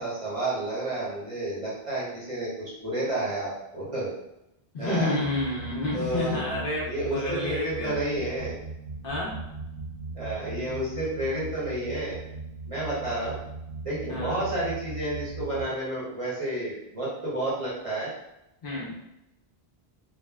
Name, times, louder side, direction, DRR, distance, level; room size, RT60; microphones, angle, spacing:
voice 1, 0.0-4.1 4.8-5.2 5.9-6.4 6.9-8.5 10.1-12.2 12.7-13.4 13.8-18.1, right 1 dB, 35° right, -8 dB, 0.8 m, -30 dB
voice 2, 4.7-7.9 9.0-9.4 14.1-14.5 18.6-18.9, left 2 dB, 60° left, -4 dB, 0.9 m, -30 dB
sound 1, 5.2-15.6, right 3 dB, 85° right, 0.9 m, -39 dB
3.2 x 2.1 x 2.2 m, 0.90 s
omnidirectional pair, 1.1 m